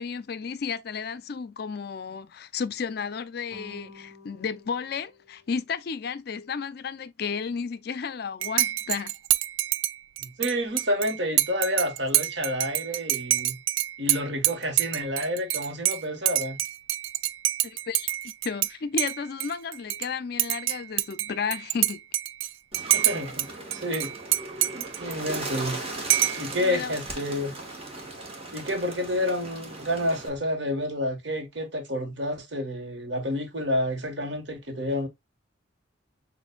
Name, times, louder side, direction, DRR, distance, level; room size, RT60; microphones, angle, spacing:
voice 1, 0.0-9.1 17.6-22.0 26.6-27.0, left 6 dB, 55° left, 0.4 m, -33 dB
sound 1, 3.5-6.1, left 2 dB, 20° left, 2.2 m, -51 dB
Dishes pots and pans / Cutlery silverware / Chink clink, 8.4-18.7 19.0-20.1 20.4-23.5 23.7-25.7 26.1-26.5, right 15 dB, 90° right, 0.3 m, -27 dB
voice 2, 10.2-13.6 14.0-16.6 22.9-24.1 24.5-25.8 26.3-27.5 28.5-35.1, left 1 dB, 65° right, 1.3 m, -29 dB
Bird, 22.7-30.3, right 2 dB, 30° right, 1.4 m, -38 dB
6.7 x 2.6 x 2.2 m
head